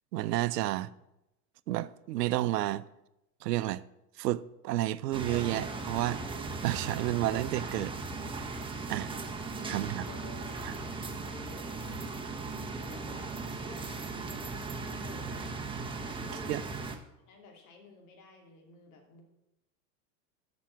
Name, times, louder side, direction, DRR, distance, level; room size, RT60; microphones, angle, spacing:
voice 1, 0.1-0.9 1.7-2.8 3.4-3.8 4.2-6.2 6.6-7.9 8.9-9.1 9.7-10.0 16.5-16.6, right 15 dB, 85° right, 0.6 m, -30 dB
sound 1, 5.1-17.0, right 3 dB, 10° right, 1.0 m, -38 dB
voice 2, 9.5-10.9 11.2-12.2 12.9-14.2 15.0-15.4 16.0-16.7 17.3-19.2, left 3 dB, 65° left, 2.7 m, -53 dB
7.3 x 6.2 x 7.3 m
hypercardioid pair, 105°, 48 cm